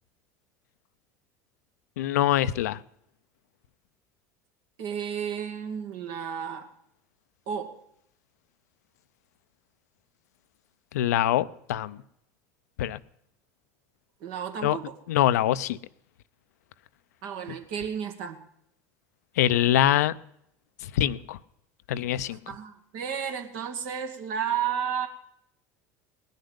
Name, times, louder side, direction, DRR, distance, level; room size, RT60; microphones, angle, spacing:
voice 1, 2.0-2.8 10.9-12.0 12.8-13.0 14.6-14.8 15.1-15.8 19.4-20.1 20.9-21.4 21.9-22.4, left 12 dB, 80° left, 0.5 m, -24 dB
voice 2, 4.8-6.7 7.5-7.8 14.2-15.0 17.2-18.4 22.3-25.1, right 8 dB, 65° right, 2.1 m, -32 dB
19.0 x 6.6 x 9.6 m
hypercardioid pair, 80°, 9 cm